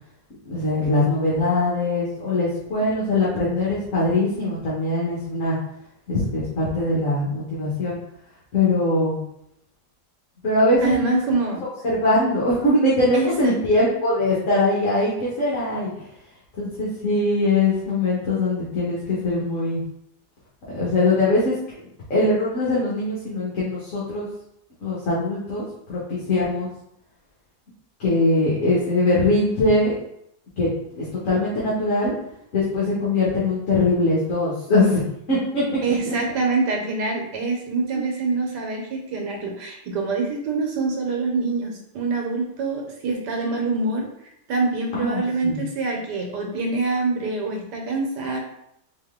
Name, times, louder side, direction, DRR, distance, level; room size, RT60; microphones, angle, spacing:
voice 1, 0.5-5.6 6.1-8.0 8.5-9.2 10.4-11.2 11.8-15.9 16.6-19.8 20.7-21.5 22.1-24.3 24.8-26.7 28.0-29.9 30.6-32.1 32.5-35.0 35.3-35.6 35.9-36.1 37.9-38.1 44.9-45.6, left 2 dB, 50° left, -8 dB, 1.5 m, -22 dB
voice 2, 10.8-11.6 13.1-13.8 35.8-44.1 44.5-48.4, right 3 dB, 80° right, 1 dB, 1.5 m, -25 dB
4.1 x 3.2 x 3.6 m, 0.77 s
omnidirectional pair, 1.8 m